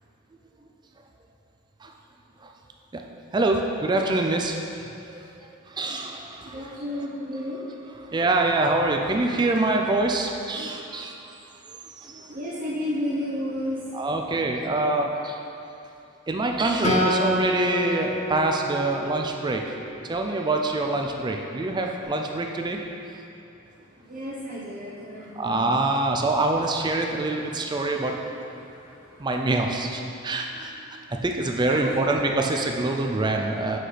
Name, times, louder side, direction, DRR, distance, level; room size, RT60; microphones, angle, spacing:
voice 1, 3.3-4.6 5.1-6.8 8.1-11.2 12.0-12.3 13.9-15.4 16.3-19.6 20.1-22.8 25.4-28.1 29.2-33.8, right 2 dB, 20° right, 2 dB, 0.4 m, -25 dB
voice 2, 6.4-7.6 12.2-13.8 24.1-25.6 28.6-28.7 29.0-29.1 31.6-32.3, left 1 dB, 40° right, -9 dB, 0.9 m, -32 dB
Acoustic guitar, 16.8-20.3, left 1 dB, 30° left, 0.7 m, -28 dB
7.6 x 5.9 x 3.3 m, 2.8 s
head